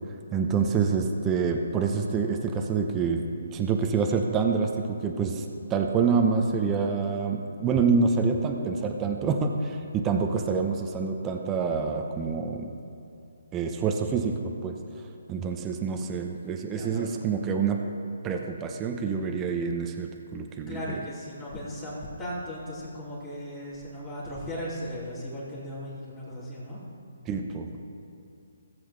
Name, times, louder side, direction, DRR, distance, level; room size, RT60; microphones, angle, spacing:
voice 1, 0.3-3.2 3.5-5.4 5.7-12.7 13.5-14.3 14.6-14.8 15.3-17.8 18.2-20.8 27.3-27.8, right 5 dB, 20° right, 3 dB, 0.8 m, -27 dB
voice 2, 16.7-17.1 20.7-26.8, equal, 25° left, -10 dB, 2.8 m, -37 dB
18.0 x 7.7 x 3.3 m, 2.6 s
figure-of-eight pair, 140°, 0 cm